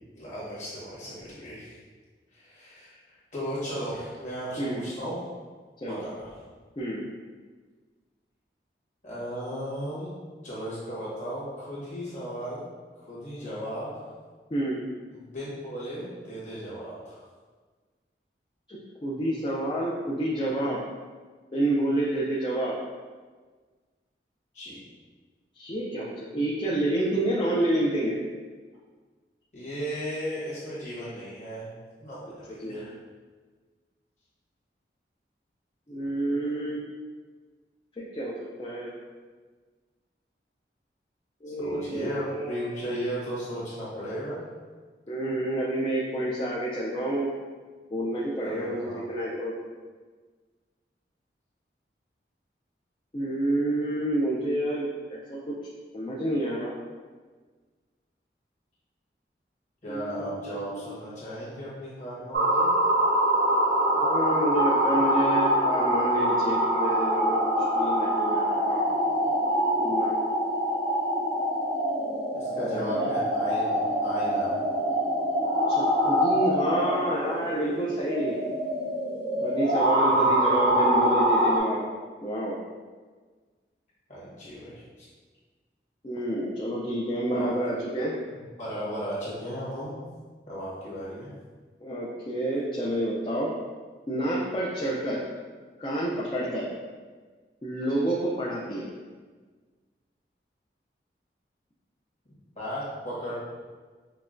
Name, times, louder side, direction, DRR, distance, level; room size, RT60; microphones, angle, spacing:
voice 1, 0.2-1.8 2.3-5.2 5.8-6.3 9.0-10.1 10.4-12.7 13.1-14.1 15.1-17.2 24.5-24.8 29.5-31.7 32.0-32.9 41.6-44.4 48.4-49.0 59.8-62.7 72.3-74.6 80.1-80.5 84.1-84.8 87.3-87.5 88.6-90.0 90.5-91.3 102.5-103.3, equal, 40° left, -9 dB, 1.5 m, -35 dB
voice 2, 14.5-14.8 18.7-20.8 21.5-22.8 25.5-28.2 32.6-32.9 35.9-36.8 38.0-38.9 41.4-42.8 45.1-47.3 47.9-49.5 53.1-55.6 55.9-56.7 59.9-61.1 64.0-68.9 69.8-70.1 72.7-73.2 75.7-78.4 79.4-81.9 82.2-82.6 86.0-88.1 91.8-93.5 94.1-95.2 95.8-96.7 97.6-98.9, right 1 dB, 25° left, -5 dB, 0.4 m, -29 dB
sound 1, 62.3-81.6, right 1 dB, 60° right, 0.7 m, -24 dB
5.8 x 2.1 x 2.5 m, 1.4 s
head